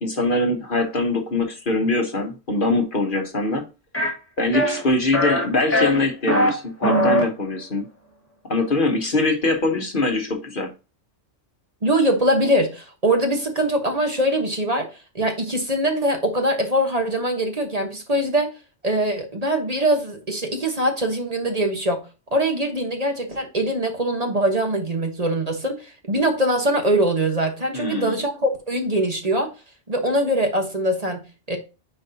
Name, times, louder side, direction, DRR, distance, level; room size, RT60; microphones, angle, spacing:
voice 1, 0.0-3.7 4.4-7.9 8.4-10.7 27.7-28.2, left 2 dB, 50° left, 1.1 m, -23 dB
sound 1, 3.9-4.1 4.5-4.8 5.1-5.4 5.7-6.5 6.8-7.2, equal, 10° left, 2.0 m, -20 dB
voice 2, 11.8-18.5 18.8-22.1 22.3-29.5 29.9-31.6, right 1 dB, 35° right, 1.2 m, -22 dB
9.3 x 4.6 x 2.7 m
omnidirectional pair, 1.2 m